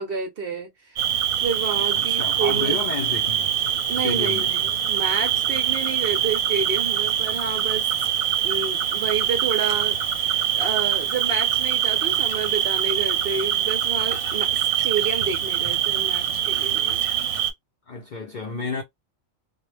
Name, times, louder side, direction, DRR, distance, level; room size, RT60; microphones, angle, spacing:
voice 1, 0.0-2.8 3.9-4.6 4.9-7.9 8.4-17.1, right 5 dB, 60° right, 0.6 m, -30 dB
Cricket, 0.9-17.5, right 10 dB, 90° right, 1.1 m, -24 dB
voice 2, 1.9-3.5 4.0-4.5 17.9-18.8, left 4 dB, 60° left, 0.4 m, -31 dB
2.2 x 2.0 x 3.2 m
omnidirectional pair, 1.4 m